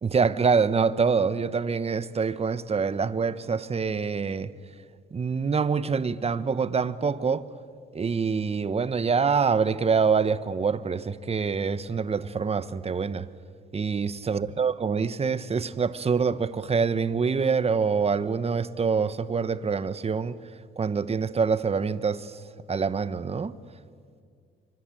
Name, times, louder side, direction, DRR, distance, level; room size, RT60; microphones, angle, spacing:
voice 1, 0.0-4.5 5.1-7.4 7.9-13.3 13.7-20.3 20.8-22.3 22.7-23.5, right 5 dB, 30° right, 1.0 m, -25 dB
24.5 x 24.5 x 9.1 m
cardioid pair, 90°, 20 cm